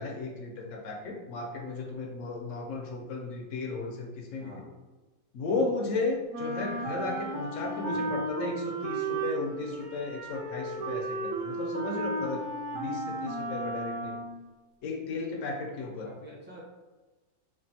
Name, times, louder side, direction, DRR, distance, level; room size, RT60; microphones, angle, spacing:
voice 1, 0.0-4.6 5.3-12.4 12.7-14.2 14.8-16.1, left 3 dB, 65° left, 0 dB, 0.8 m, -34 dB
voice 2, 4.4-4.7 7.9-8.2 15.8-16.6, equal, 10° right, -8 dB, 0.7 m, -48 dB
Wind instrument woodwind instrument, 6.3-14.5, right 2 dB, 70° right, 1.0 m, -34 dB
3.3 x 2.4 x 2.6 m, 1.2 s
omnidirectional pair, 1.6 m